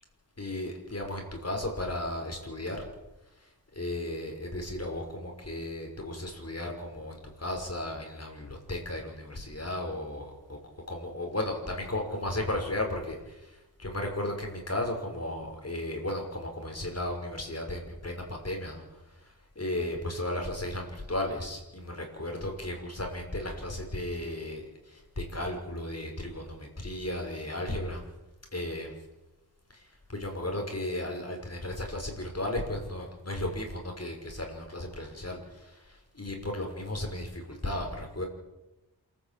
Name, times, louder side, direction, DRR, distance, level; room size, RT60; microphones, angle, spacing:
voice 1, 0.4-2.9 3.4-10.6 10.9-18.8 19.2-28.0 28.5-28.9 29.7-38.2, left 1 dB, 40° left, 2 dB, 6.1 m, -35 dB
27.5 x 14.5 x 8.7 m, 1.0 s
wide cardioid pair, 80°, 40 cm